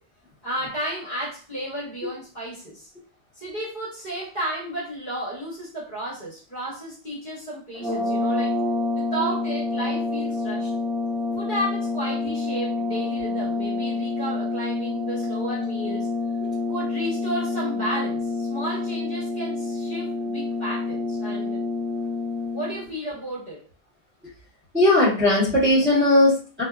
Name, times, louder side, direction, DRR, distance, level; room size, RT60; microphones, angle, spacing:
voice 1, 0.4-2.9 3.3-8.5 8.9-10.7 11.3-16.1 16.7-21.6 22.5-23.6, right 1 dB, 45° left, -7 dB, 1.1 m, -33 dB
sound 1, 7.7-22.9, left 3 dB, 15° left, 0.4 m, -27 dB
voice 2, 24.7-26.6, left 1 dB, 10° right, -10 dB, 1.1 m, -18 dB
2.6 x 2.1 x 2.3 m, 0.40 s
omnidirectional pair, 1.1 m